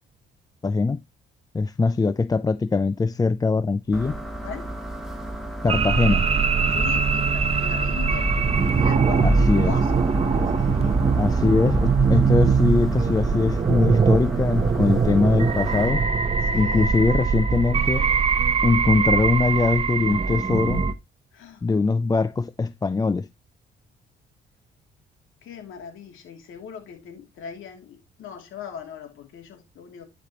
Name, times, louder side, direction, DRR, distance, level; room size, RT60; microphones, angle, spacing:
voice 1, 0.6-1.0 1.5-4.2 5.6-6.2 9.2-9.7 11.2-16.0 16.5-18.1 18.6-20.9 21.6-23.3, left 4 dB, 20° left, 0.4 m, -22 dB
sound 1, 3.9-15.9, right 1 dB, ahead, 2.3 m, -34 dB
voice 2, 4.4-4.7 6.7-10.1 10.5-11.1 16.4-17.2 21.3-21.6 25.4-30.0, left 7 dB, 80° left, 2.8 m, -40 dB
sound 2, 5.7-20.9, right 5 dB, 30° right, 0.9 m, -22 dB
11.5 x 5.1 x 3.0 m
cardioid pair, 90°, 20 cm